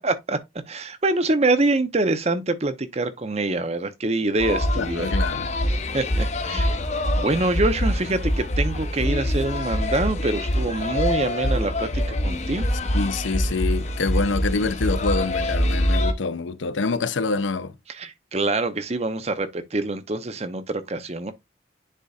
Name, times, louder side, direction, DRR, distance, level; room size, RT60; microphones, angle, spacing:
voice 1, 0.0-0.4 0.7-5.1 5.9-6.8 7.2-12.7 17.9-21.3, right 2 dB, 35° right, 0.7 m, -25 dB
sound 1, 4.4-16.1, left 1 dB, 35° left, 0.8 m, -24 dB
voice 2, 4.8-5.5 12.9-17.7, left 4 dB, 85° left, 0.6 m, -26 dB
9.8 x 4.0 x 2.4 m
head